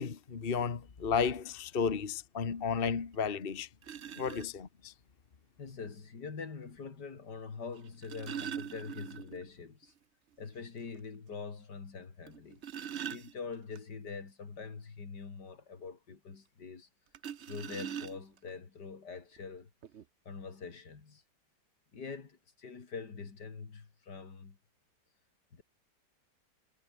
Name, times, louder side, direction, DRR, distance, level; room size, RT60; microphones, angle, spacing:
voice 1, 0.0-3.7 4.2-4.9, left 6 dB, 35° left, 1.4 m, -33 dB
sound 1, 3.1-3.2 3.8-4.5 5.9-6.0 7.8-9.5 9.8-9.9 10.3-10.4 10.9-11.0 12.3-13.8 17.1-18.5 19.4-19.5 19.8-20.0, right 9 dB, 50° right, 0.9 m, -42 dB
voice 2, 5.6-9.9 10.4-12.6 13.1-16.9 17.5-19.7 20.2-21.2 21.9-24.6 25.5-25.6, left 5 dB, 70° left, 3.3 m, -44 dB
omnidirectional pair, 1.9 m